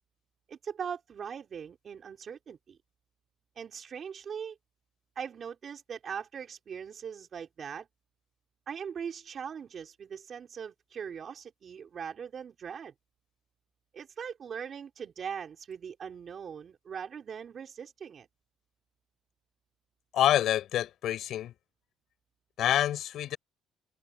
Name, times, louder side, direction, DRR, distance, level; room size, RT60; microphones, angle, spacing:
voice 1, 0.5-2.8 3.6-4.6 5.2-7.9 8.7-12.9 13.9-18.3, right 7 dB, 35° right, 4.5 m, -40 dB
voice 2, 20.1-21.5 22.6-23.4, left 12 dB, 55° left, 6.4 m, -27 dB
cardioid pair, 155°, 0 cm